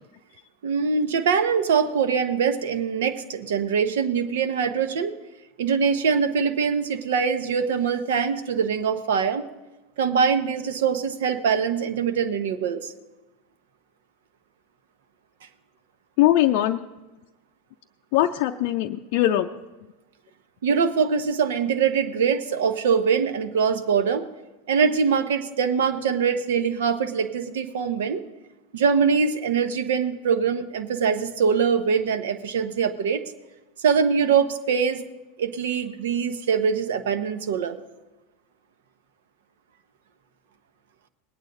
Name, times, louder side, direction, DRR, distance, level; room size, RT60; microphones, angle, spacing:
voice 1, 0.6-5.1 5.6-9.4 10.0-12.9 20.6-24.3 24.7-28.2 28.7-33.2 33.8-35.0 35.4-37.8, right 6 dB, 70° right, 9 dB, 1.0 m, -23 dB
voice 2, 16.2-16.8 18.1-19.5, left 13 dB, 55° left, 4 dB, 0.5 m, -21 dB
20.0 x 9.1 x 3.9 m, 1.1 s
hypercardioid pair, 90°, 0 cm